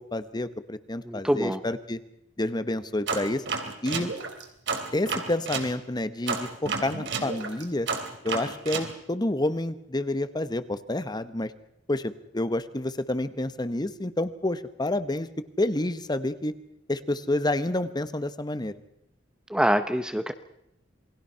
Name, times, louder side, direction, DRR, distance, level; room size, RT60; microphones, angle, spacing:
voice 1, 0.0-2.0 2.4-3.4 3.8-4.1 4.9-7.9 8.2-11.5 11.9-15.3 15.6-16.5 16.9-18.7, left 1 dB, 20° left, 13 dB, 1.0 m, -29 dB
voice 2, 1.1-1.6 19.5-20.3, equal, 5° right, 9 dB, 0.8 m, -25 dB
sound 1, 3.1-5.7 6.3-8.9, right 4 dB, 65° right, 3.0 m, -31 dB
28.0 x 20.0 x 5.7 m, 0.79 s
head